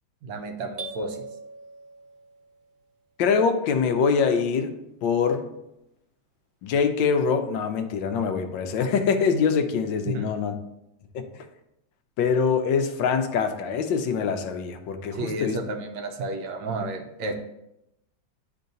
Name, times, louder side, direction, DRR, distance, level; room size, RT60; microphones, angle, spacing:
voice 1, 0.2-1.2 10.1-10.3 15.1-17.3, right 2 dB, 75° right, 4 dB, 1.4 m, -32 dB
sound 1, 0.8-2.7, right 3 dB, 40° right, 0.8 m, -40 dB
voice 2, 3.2-4.7 5.0-5.5 6.6-10.5 11.1-11.4 12.2-15.6, left 6 dB, 80° left, 6 dB, 1.4 m, -24 dB
10.5 x 3.8 x 2.6 m, 0.85 s
omnidirectional pair, 2.0 m